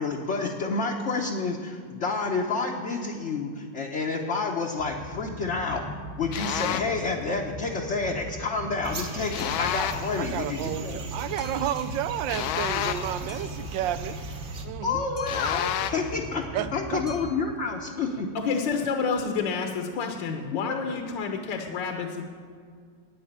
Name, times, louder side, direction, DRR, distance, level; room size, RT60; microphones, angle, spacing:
voice 1, 0.0-5.8 6.2-11.0 14.8-18.3, left 4 dB, 50° left, 0 dB, 0.9 m, -29 dB
Boat Water vehicle, 4.8-17.3, equal, 10° left, 0.6 m, -39 dB
sound 1, 6.3-7.0 9.3-10.2 12.3-13.3 15.3-16.1, left 11 dB, 85° left, 1.4 m, -30 dB
sound 2, 8.8-14.7, right 3 dB, 50° right, 1.3 m, -39 dB
voice 2, 10.2-14.2 14.6-15.1 16.5-17.1 18.4-18.5, right 11 dB, 75° right, 12 dB, 1.2 m, -31 dB
voice 3, 18.3-22.2, left 5 dB, 65° left, 4 dB, 1.5 m, -29 dB
11.0 x 8.9 x 8.7 m, 2.1 s
omnidirectional pair, 2.2 m